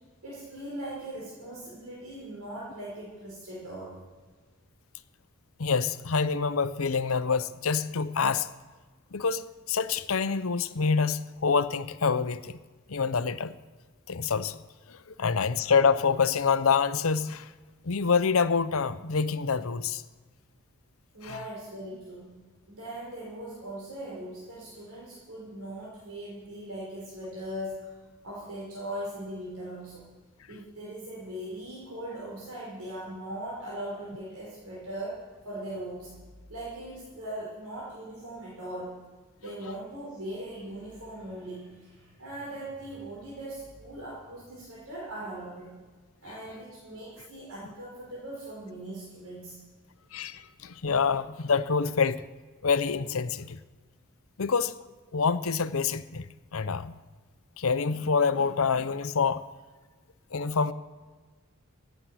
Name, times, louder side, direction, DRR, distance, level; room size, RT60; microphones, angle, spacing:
voice 1, 0.2-4.0 21.1-22.3 22.7-28.0 28.2-30.1 30.5-36.1 36.5-38.9 39.4-45.7 46.2-49.6, right 1 dB, 85° right, -6 dB, 5.5 m, -40 dB
voice 2, 5.6-8.5 9.1-12.6 12.9-13.6 14.1-14.6 14.9-17.5 17.8-20.0 21.2-21.4 50.1-52.2 52.6-53.6 54.4-54.8 55.1-57.0 57.6-59.4 60.3-60.7, left 5 dB, 70° left, 13 dB, 0.7 m, -26 dB
15.0 x 9.1 x 8.3 m, 1.4 s
head